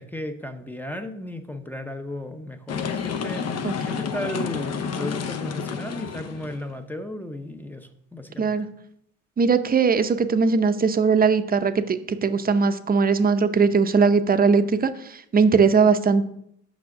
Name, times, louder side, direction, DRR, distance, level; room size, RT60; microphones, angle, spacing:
voice 1, 0.0-3.4 3.8-8.6, left 1 dB, 5° left, 7 dB, 0.7 m, -35 dB
sound 1, 2.7-6.7, left 6 dB, 55° left, 0.8 m, -30 dB
voice 2, 9.4-16.2, right 5 dB, 30° right, 10 dB, 0.6 m, -20 dB
6.2 x 5.6 x 5.8 m, 0.75 s
cardioid pair, 90°, 30 cm